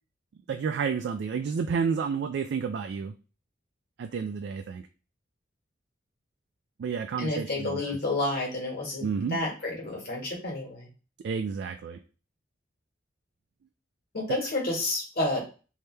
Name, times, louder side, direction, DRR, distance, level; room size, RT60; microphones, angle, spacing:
voice 1, 0.5-3.1 4.0-4.9 6.8-8.0 9.0-9.4 11.2-12.0, right 6 dB, 60° right, 7 dB, 0.3 m, -30 dB
voice 2, 7.2-10.9 14.1-15.4, left 2 dB, 55° left, -2 dB, 1.5 m, -30 dB
3.3 x 2.8 x 3.2 m, 0.35 s
head